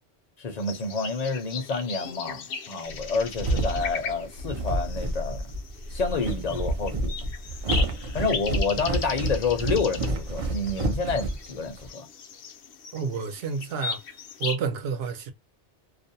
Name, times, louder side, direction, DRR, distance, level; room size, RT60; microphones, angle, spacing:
voice 1, 0.4-5.4 5.9-7.1 8.1-12.1, left 4 dB, 45° left, 0.6 m, -29 dB
sound 1, 0.6-14.6, left 5 dB, 75° left, 0.8 m, -38 dB
sound 2, 3.0-11.9, right 1 dB, 50° right, 0.4 m, -29 dB
voice 2, 12.9-14.0 14.4-15.3, right 5 dB, 65° right, 0.8 m, -30 dB
2.5 x 2.1 x 2.6 m
omnidirectional pair, 1.2 m